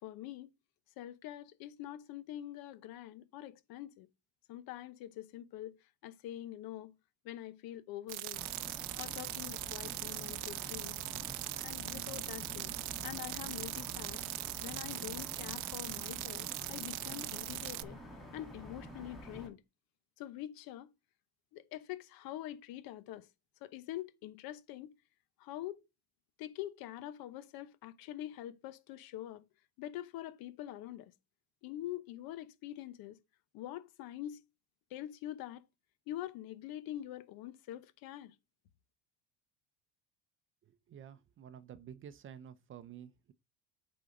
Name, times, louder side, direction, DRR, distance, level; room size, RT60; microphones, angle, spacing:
voice 1, 0.0-0.5 1.0-4.1 4.5-5.8 6.0-7.0 7.2-8.4 8.9-11.0 11.6-12.7 13.0-14.2 14.6-18.0 18.3-19.6 20.2-20.9 21.5-23.3 23.6-24.9 25.4-25.8 26.4-29.4 29.8-31.1 31.6-33.2 33.5-34.4 34.9-35.6 36.1-38.3, left 13 dB, 60° left, 1.0 m, -45 dB
sound 1, 8.1-17.8, right 20 dB, 75° right, 0.6 m, -40 dB
sound 2, 8.3-19.5, equal, ahead, 2.4 m, -49 dB
voice 2, 40.6-43.3, right 9 dB, 30° right, 0.6 m, -51 dB
8.1 x 4.1 x 5.0 m
cardioid pair, 155°, 41 cm